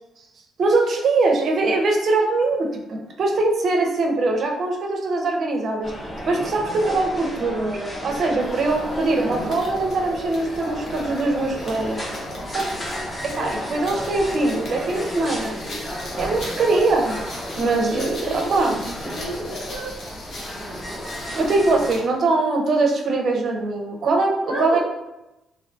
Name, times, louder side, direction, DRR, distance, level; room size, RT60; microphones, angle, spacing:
voice 1, 0.6-5.9 6.3-12.0 12.5-12.7 13.2-15.6 16.2-17.2 17.6-18.8 21.4-24.8, right 3 dB, 55° right, 2 dB, 0.5 m, -22 dB
sound 1, 5.8-22.0, equal, 25° left, 0.9 m, -32 dB
sound 2, 8.4-22.1, left 1 dB, 60° left, 0.7 m, -40 dB
voice 2, 17.9-20.0 24.5-24.8, right 1 dB, 85° left, -9 dB, 1.3 m, -31 dB
2.5 x 2.2 x 2.5 m, 0.94 s
cardioid pair, 90°, 0 cm